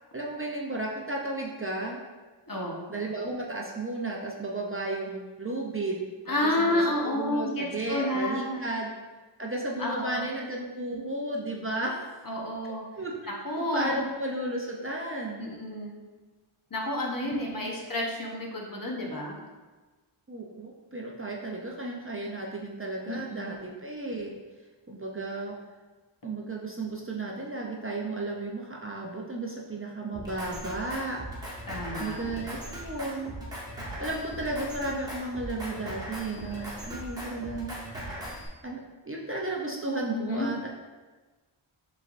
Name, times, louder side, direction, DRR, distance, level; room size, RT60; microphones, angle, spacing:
voice 1, 0.1-2.0 2.9-8.9 9.4-12.1 13.0-13.1 13.6-15.4 17.2-17.7 20.3-24.3 24.9-25.5 26.2-31.2 32.0-33.4 34.0-37.7 38.6-40.7, right 2 dB, 25° right, -2 dB, 0.6 m, -34 dB
voice 2, 2.5-2.8 6.3-8.6 9.8-10.3 12.2-12.8 13.4-14.0 15.4-16.0 16.7-19.4 23.1-23.6 31.7-32.2 40.1-40.5, left 1 dB, 40° left, -2 dB, 1.0 m, -30 dB
Drum kit, 30.1-38.5, right 1 dB, 10° right, 1.4 m, -39 dB
6.4 x 3.2 x 2.5 m, 1.3 s
wide cardioid pair, 65°, 50 cm